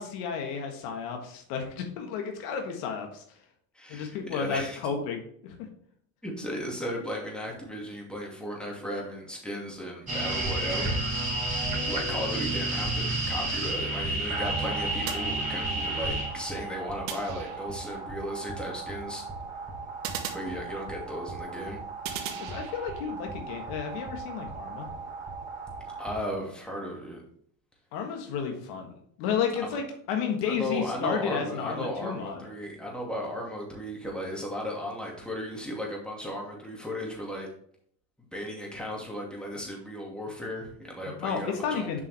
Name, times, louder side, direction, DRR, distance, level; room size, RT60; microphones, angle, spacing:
voice 1, 0.0-3.2 3.9-5.6 11.8-11.9 22.4-24.9 27.9-32.4 41.1-42.0, left 6 dB, 75° left, 3 dB, 1.7 m, -32 dB
voice 2, 3.7-4.8 6.2-10.9 11.8-19.2 20.3-21.8 26.0-27.2 29.6-29.8 30.5-37.5 38.3-42.0, equal, ahead, -2 dB, 2.5 m, -35 dB
sound 1, 10.1-26.2, right 2 dB, 20° right, 3.1 m, -33 dB
sound 2, 15.1-16.0 17.1-17.9 20.0-21.2 22.0-23.1, right 9 dB, 85° right, 1.2 m, -39 dB
7.0 x 5.6 x 3.5 m, 0.63 s
supercardioid pair, 110°, 40 cm